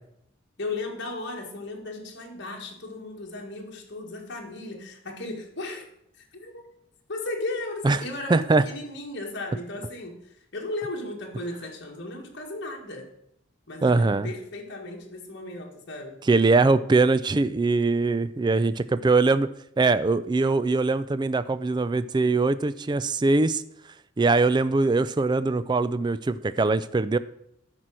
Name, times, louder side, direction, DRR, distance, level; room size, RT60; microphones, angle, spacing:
voice 1, 0.6-5.8 6.2-6.7 7.1-13.1 13.7-16.2, left 2 dB, 60° left, 0 dB, 1.8 m, -36 dB
voice 2, 8.3-8.6 13.8-14.3 16.3-19.5 19.8-23.6 24.2-27.2, right 3 dB, 20° right, 15 dB, 0.3 m, -22 dB
11.0 x 4.5 x 6.2 m, 0.75 s
head